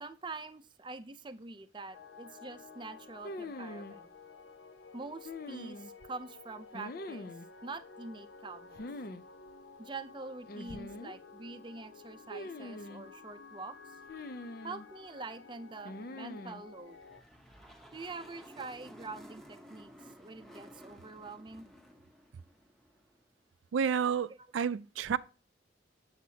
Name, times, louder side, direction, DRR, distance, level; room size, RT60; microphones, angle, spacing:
voice 1, 0.0-4.1 4.9-7.3 7.6-8.9 9.8-14.0 14.6-17.0 17.9-21.7, right 3 dB, 25° right, 0.5 m, -45 dB
sound 1, 1.9-17.2, left 4 dB, 75° left, 0.8 m, -53 dB
sound 2, 3.2-3.9 5.2-6.1 6.7-7.5 8.7-9.2 9.5-9.6 10.5-11.2 12.3-13.1 14.1-14.9 15.8-16.6, left 1 dB, 50° left, 0.5 m, -43 dB
sound 3, 16.8-23.3, equal, ahead, 0.9 m, -54 dB
voice 2, 23.7-25.2, right 7 dB, 85° right, 0.4 m, -30 dB
7.8 x 7.2 x 2.8 m
head